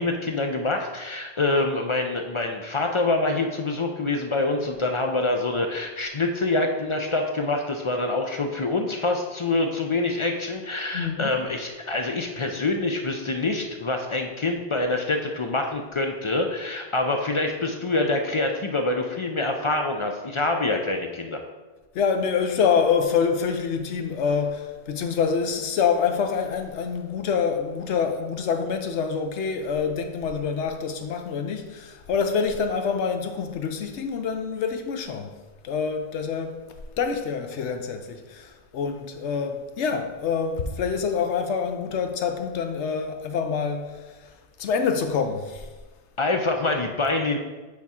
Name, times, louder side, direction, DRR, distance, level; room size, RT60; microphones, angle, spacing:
voice 1, 0.0-21.4 46.2-47.4, left 2 dB, 50° left, 0.3 m, -26 dB
voice 2, 10.9-11.3 21.9-35.3 35.6-36.6 37.0-44.3 44.6-45.7, left 6 dB, 80° left, 1.0 m, -26 dB
8.3 x 3.5 x 4.2 m
omnidirectional pair, 1.2 m